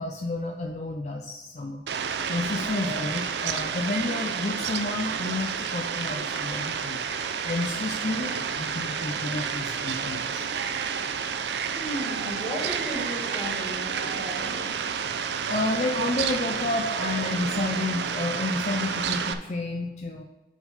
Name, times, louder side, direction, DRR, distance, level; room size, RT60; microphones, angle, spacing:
voice 1, 0.0-1.8 2.3-7.0 7.4-10.5 15.5-20.2, left 2 dB, 40° left, 2 dB, 0.5 m, -30 dB
Fowl, 1.9-19.3, right 6 dB, 70° right, 0.5 m, -30 dB
sound 1, 2.1-4.1 4.6-4.7, right 1 dB, 50° right, 2.3 m, -43 dB
voice 2, 11.7-14.7, equal, 10° left, -4 dB, 2.0 m, -35 dB
6.3 x 5.3 x 5.3 m, 1.1 s
head